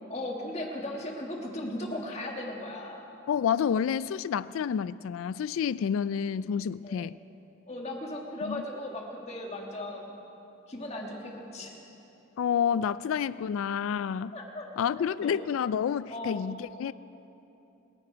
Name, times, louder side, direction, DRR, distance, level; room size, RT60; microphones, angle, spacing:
voice 1, 0.1-3.1 6.8-7.0 7.7-10.2 10.7-11.7 14.3-14.7 14.9-15.3 16.1-16.5, left 1 dB, 30° left, 0 dB, 1.8 m, -37 dB
voice 2, 3.3-7.2 8.4-8.6 12.4-14.4 14.8-16.9, left 7 dB, 80° left, 17 dB, 0.3 m, -29 dB
29.5 x 9.9 x 4.7 m, 3.0 s
head